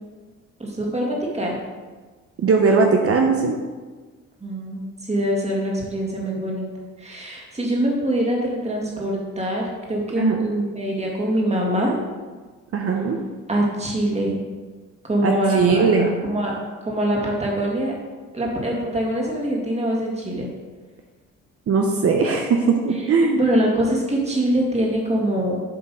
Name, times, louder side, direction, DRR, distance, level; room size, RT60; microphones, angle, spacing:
voice 1, 0.6-1.6 4.4-6.7 7.0-11.9 13.5-14.4 15.1-15.8 16.2-16.6 16.8-17.9 18.3-20.5 23.3-25.6, right 1 dB, 20° right, -2 dB, 2.0 m, -23 dB
voice 2, 2.4-3.6 10.2-10.4 12.7-13.2 15.2-16.1 21.7-23.4, right 4 dB, 50° right, 2 dB, 0.8 m, -19 dB
7.9 x 3.8 x 5.6 m, 1.3 s
cardioid pair, 90°, 30 cm